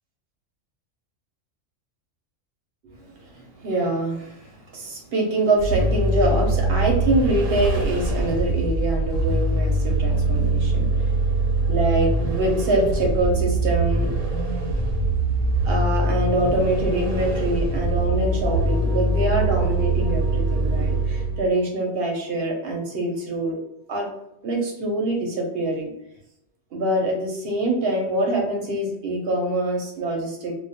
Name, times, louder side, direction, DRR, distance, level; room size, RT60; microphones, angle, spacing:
voice 1, 3.3-11.1 11.7-14.1 15.6-23.6 23.9-24.1 24.4-25.9 26.7-30.6, right 1 dB, 60° right, 1 dB, 0.7 m, -25 dB
Vehicle, 5.6-21.5, right 2 dB, 90° right, 1.0 m, -23 dB
sound 1, 18.0-23.9, equal, 60° left, 0.4 m, -39 dB
2.2 x 2.0 x 2.7 m, 0.78 s
omnidirectional pair, 1.4 m